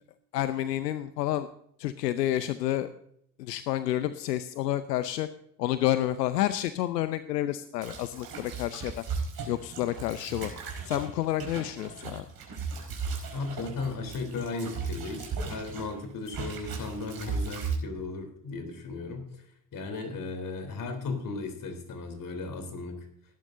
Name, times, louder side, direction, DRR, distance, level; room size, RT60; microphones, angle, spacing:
voice 1, 0.3-1.5 1.8-2.9 3.4-5.3 5.6-9.0 9.5-10.5 10.8-12.2, left 13 dB, 85° left, 13 dB, 0.7 m, -29 dB
sound 1, 7.8-16.0 16.3-17.8, right 5 dB, 50° right, 4.9 m, -36 dB
voice 2, 13.3-19.4 19.7-23.0, left 3 dB, 40° left, 6 dB, 3.6 m, -36 dB
17.0 x 11.5 x 2.6 m, 0.69 s
hypercardioid pair, 65°, 48 cm